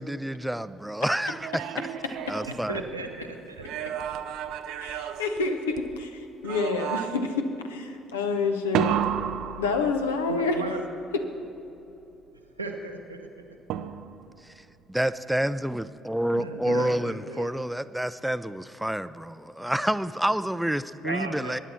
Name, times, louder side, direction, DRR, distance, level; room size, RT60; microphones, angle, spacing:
voice 1, 0.0-1.6 2.3-2.8 14.9-21.6, right 1 dB, 5° right, 14 dB, 0.5 m, -28 dB
sound 1, 1.2-3.1 3.6-6.0 6.4-7.4 8.7-10.3 13.7-14.3, right 10 dB, 60° right, 0.5 m, -32 dB
voice 2, 2.7-3.9 10.3-10.8 12.5-13.5 16.3-17.6 21.0-21.6, right 3 dB, 85° right, 3 dB, 0.9 m, -36 dB
voice 3, 4.8-9.0 9.6-10.6, left 4 dB, 75° left, 5 dB, 0.9 m, -28 dB
22.0 x 10.0 x 4.3 m, 2.9 s
figure-of-eight pair, 50°, 0 cm